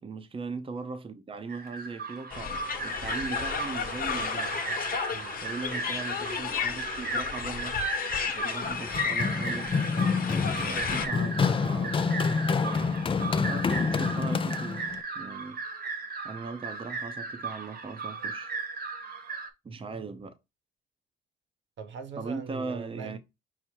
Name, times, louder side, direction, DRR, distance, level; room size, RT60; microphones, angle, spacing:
voice 1, 0.0-4.6 5.4-7.8 8.3-9.7 10.6-12.3 13.5-14.9 15.1-15.6 16.2-18.5 19.6-20.4 22.2-23.2, right 4 dB, 25° right, 0.7 m, -39 dB
sound 1, 1.5-19.5, right 4 dB, 50° right, 1.1 m, -37 dB
sound 2, 2.3-11.1, left 5 dB, 45° left, 1.0 m, -32 dB
voice 2, 5.1-5.4 10.3-10.6 21.8-23.2, right 5 dB, 65° right, 0.8 m, -41 dB
Run, 8.6-15.0, left 5 dB, 25° left, 0.4 m, -28 dB
5.6 x 2.0 x 4.5 m
cardioid pair, 90°, 20 cm